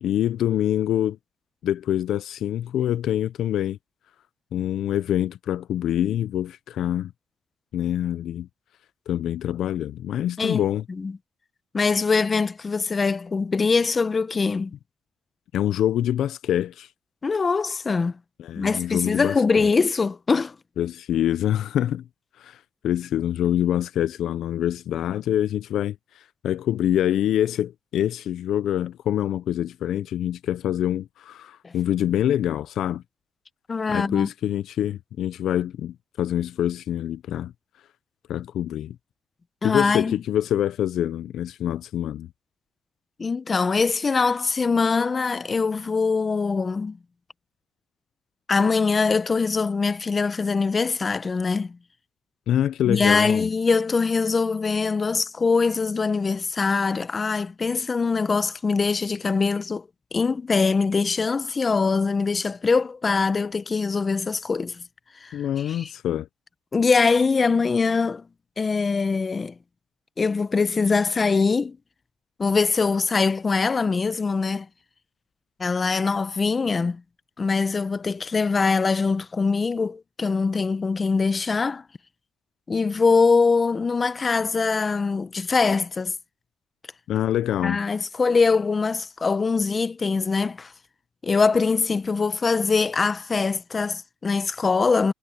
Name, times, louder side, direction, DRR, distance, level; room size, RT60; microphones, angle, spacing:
voice 1, 0.0-1.2 1.6-3.8 4.5-7.1 7.7-8.5 9.1-10.8 15.5-16.9 18.4-19.3 20.8-22.1 22.4-33.0 33.9-37.5 38.3-39.0 39.6-42.3 52.5-53.5 65.3-66.3 87.1-87.8, left 11 dB, 75° left, 0.5 m, -25 dB
voice 2, 11.7-14.7 17.2-18.2 18.5-20.5 31.6-31.7 33.7-34.3 39.6-40.1 43.2-47.0 48.5-51.8 52.9-59.8 60.1-64.8 65.2-65.9 66.7-68.2 68.6-69.5 70.2-71.8 72.4-74.7 75.6-77.0 77.4-81.8 82.7-86.1 87.6-90.7 91.2-95.1, left 4 dB, 35° left, 0.8 m, -23 dB
cardioid pair, 90°, 0 cm